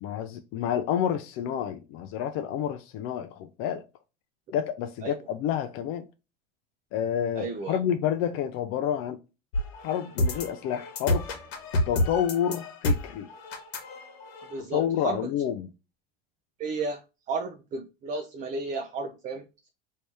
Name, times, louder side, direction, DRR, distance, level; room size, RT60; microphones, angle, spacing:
voice 1, 0.0-3.8 4.5-6.0 6.9-9.2 9.8-11.2 11.9-13.3 14.6-15.7, left 9 dB, 45° left, 0.4 m, -29 dB
voice 2, 7.4-7.8 14.5-15.3 16.6-17.0 17.3-19.7, right 3 dB, 25° right, 0.4 m, -33 dB
sound 1, 9.5-14.6, left 1 dB, 80° left, 1.1 m, -29 dB
3.1 x 2.7 x 3.2 m
hypercardioid pair, 105°, 30 cm